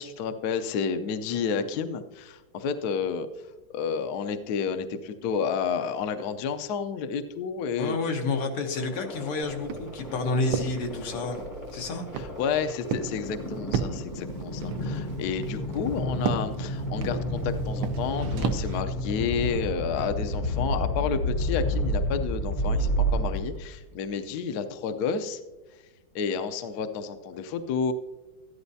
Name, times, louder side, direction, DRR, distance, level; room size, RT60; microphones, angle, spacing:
voice 1, 0.0-3.3 3.7-7.9 12.2-25.4 26.1-27.9, left 6 dB, 70° left, 8 dB, 0.9 m, -30 dB
voice 2, 7.8-11.4 11.7-12.1, left 3 dB, 85° left, 4 dB, 2.1 m, -29 dB
sound 1, 8.7-23.8, equal, 40° left, 0.6 m, -31 dB
Walk footsteps, 9.4-18.8, right 7 dB, 75° right, 0.9 m, -35 dB
13.5 x 11.5 x 2.7 m, 1.1 s
omnidirectional pair, 2.4 m